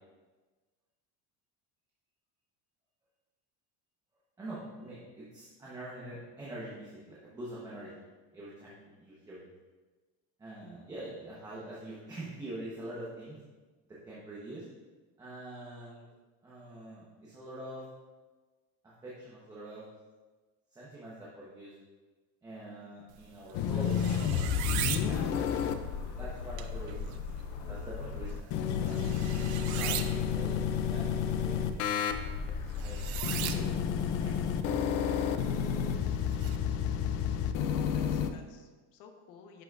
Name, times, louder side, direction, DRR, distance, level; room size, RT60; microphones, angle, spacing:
voice 1, 4.4-8.1 8.3-9.5 10.4-13.4 13.9-14.7 15.2-16.0 16.4-17.9 19.0-19.8 20.7-21.7 22.4-24.4 25.0-25.7 26.2-27.2 27.7-29.0 29.5-31.9 32.8-33.8 34.2-35.4, right 1 dB, 10° right, -7 dB, 1.0 m, -45 dB
sound 1, 23.1-36.6, right 11 dB, 60° right, 0.6 m, -42 dB
sound 2, 23.5-38.3, left 7 dB, 50° left, 0.5 m, -31 dB
voice 2, 37.7-39.6, left 5 dB, 65° left, 4 dB, 1.1 m, -53 dB
11.0 x 5.9 x 2.5 m, 1.3 s
cardioid pair, 175°, 33 cm